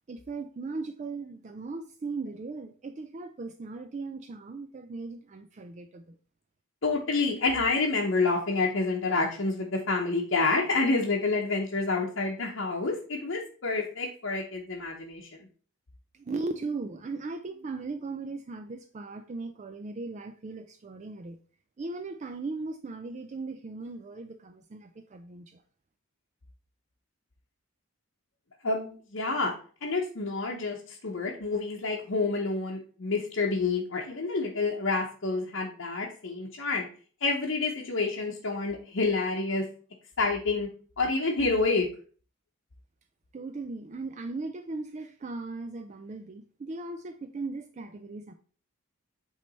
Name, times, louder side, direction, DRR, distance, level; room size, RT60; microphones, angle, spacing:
voice 1, 0.1-6.2 16.1-21.4 21.8-25.6 43.3-48.3, right 3 dB, 30° right, 0.3 m, -38 dB
voice 2, 6.8-15.4 28.6-29.5 29.8-36.9 37.2-39.6 40.2-40.7 41.0-41.9, left 3 dB, 60° left, 0.9 m, -28 dB
8.4 x 3.3 x 4.0 m
head